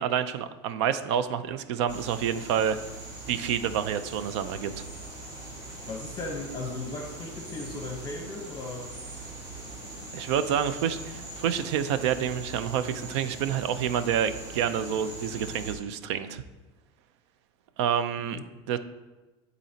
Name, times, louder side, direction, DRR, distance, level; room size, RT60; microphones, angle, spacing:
voice 1, 0.0-2.8 3.3-4.8 10.1-16.4 17.8-18.4 18.7-18.8, right 8 dB, 75° right, 12 dB, 0.5 m, -28 dB
sound 1, 1.9-15.7, right 2 dB, 25° right, 2.5 m, -41 dB
voice 2, 5.9-8.9 18.2-18.4, left 3 dB, 30° left, 1 dB, 0.9 m, -37 dB
12.0 x 4.1 x 2.8 m, 1.1 s
supercardioid pair, 140°, 15 cm